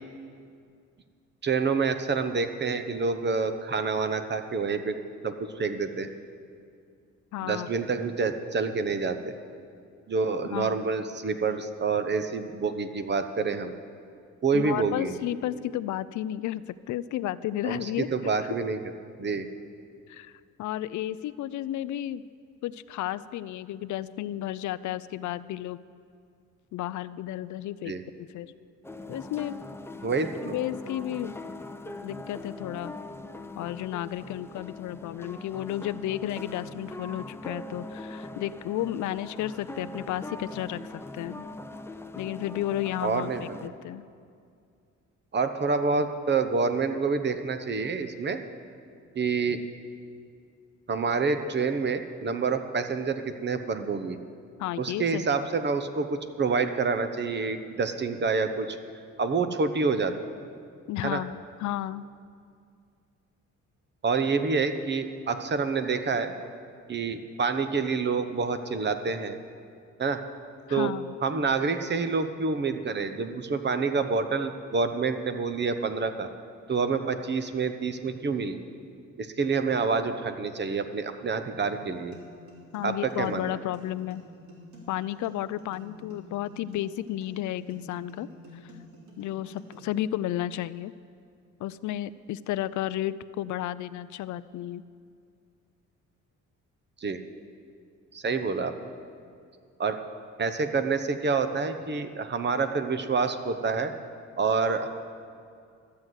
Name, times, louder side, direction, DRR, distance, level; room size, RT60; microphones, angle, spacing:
voice 1, 1.4-5.0 5.2-6.1 7.4-9.4 10.1-13.7 14.4-15.1 17.6-18.8 19.2-19.5 27.9-28.0 30.0-30.6 43.0-43.6 45.3-48.4 49.1-49.6 50.9-54.2 54.8-58.8 59.2-60.1 61.0-61.2 64.0-66.3 66.9-69.4 70.0-70.2 70.7-70.9 71.2-76.3 76.7-78.6 79.2-82.2 82.8-83.6 97.0-97.2 98.1-98.7 99.8-100.0 100.4-103.9 104.4-104.9, right 4 dB, 35° right, 9 dB, 0.9 m, -27 dB
voice 2, 7.3-7.7 10.5-10.8 14.5-18.1 20.1-22.2 22.6-25.8 26.7-28.5 29.1-29.6 30.4-31.3 32.0-32.9 33.6-41.5 42.2-44.0 54.6-55.5 60.9-62.0 70.7-71.1 82.7-84.2 84.9-88.3 88.6-88.7 89.2-90.9 91.6-94.8, left 13 dB, 75° left, 16 dB, 0.5 m, -33 dB
sound 1, 28.8-43.7, left 2 dB, 10° left, 0.6 m, -41 dB
sound 2, 81.8-89.8, left 2 dB, 70° right, 3.6 m, -50 dB
13.0 x 7.7 x 8.1 m, 2.3 s
cardioid pair, 90°, 30 cm